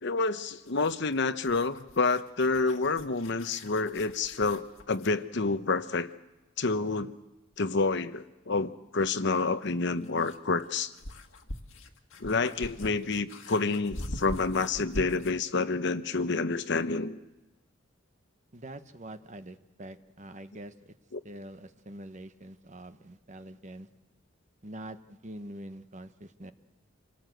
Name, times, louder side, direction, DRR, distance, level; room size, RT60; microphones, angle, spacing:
voice 1, 0.0-6.1 6.6-7.1 7.6-10.9 12.2-17.2 21.1-21.2, left 3 dB, 60° left, 12 dB, 0.9 m, -28 dB
sound 1, 0.7-5.2 7.5-7.6 9.6-15.4, left 1 dB, 85° left, 1.8 m, -43 dB
voice 2, 18.5-20.9 21.2-23.9 24.6-26.5, right 1 dB, 35° right, 10 dB, 1.0 m, -45 dB
27.5 x 18.0 x 7.8 m, 1.1 s
head